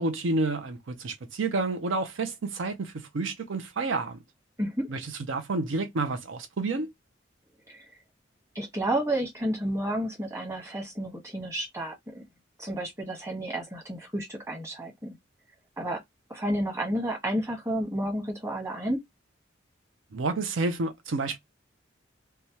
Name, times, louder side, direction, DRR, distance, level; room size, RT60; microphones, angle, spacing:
voice 1, 0.0-4.2 4.9-6.9 20.1-21.4, right 3 dB, 80° right, 0.5 m, -29 dB
voice 2, 4.6-4.9 7.7-7.9 8.5-12.2 12.6-15.2 15.8-16.0 16.3-19.0, right 1 dB, 15° right, 1.2 m, -31 dB
3.2 x 2.2 x 2.7 m
head